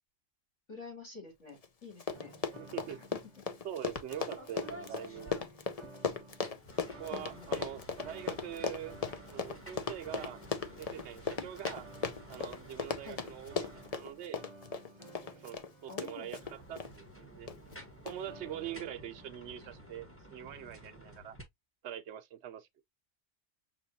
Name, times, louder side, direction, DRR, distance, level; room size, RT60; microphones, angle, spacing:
voice 1, 0.7-2.3 3.1-3.2 7.1-7.8 13.0-13.2 15.9-16.4, left 4 dB, 75° left, 3.9 m, -49 dB
Run, 1.6-1.7 1.9-16.9 17.5-17.7 18.1-18.2, left 5 dB, 45° left, 0.5 m, -37 dB
sound 1, 2.1-3.8 4.1-6.5 6.9-16.9 18.3-20.0, right 1 dB, 25° right, 0.9 m, -55 dB
voice 2, 2.6-3.0 3.6-5.3 7.0-9.0 9.3-10.4 10.8-11.9 12.3-14.4 15.2-17.5 18.0-21.4 21.8-22.7, right 10 dB, 65° right, 0.9 m, -44 dB
sound 2, 3.9-4.1 4.4-5.9 6.3-14.4 16.1-21.4, right 1 dB, 10° left, 1.0 m, -52 dB
5.7 x 3.0 x 2.7 m
omnidirectional pair, 1.3 m